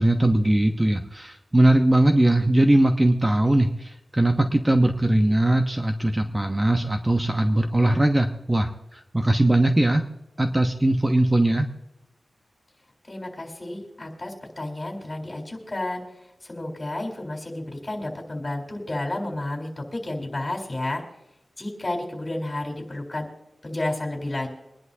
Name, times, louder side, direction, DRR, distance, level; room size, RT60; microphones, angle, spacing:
voice 1, 0.0-10.1 10.4-11.7, right 1 dB, 20° right, 5 dB, 0.9 m, -20 dB
voice 2, 13.1-16.0 16.4-21.0 21.6-23.3 23.6-24.5, left 1 dB, 30° left, 0 dB, 3.8 m, -31 dB
24.0 x 11.0 x 2.8 m, 0.88 s
wide cardioid pair, 80°, 0 cm